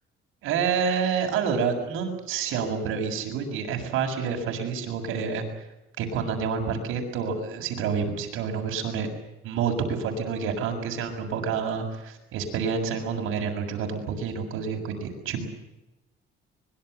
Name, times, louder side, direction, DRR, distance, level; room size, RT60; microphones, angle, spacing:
voice 1, 0.4-5.4 6.0-9.1 9.4-15.5, right 6 dB, 75° right, 4 dB, 7.1 m, -28 dB
24.5 x 22.5 x 8.0 m, 0.95 s
cardioid pair, 155°, 21 cm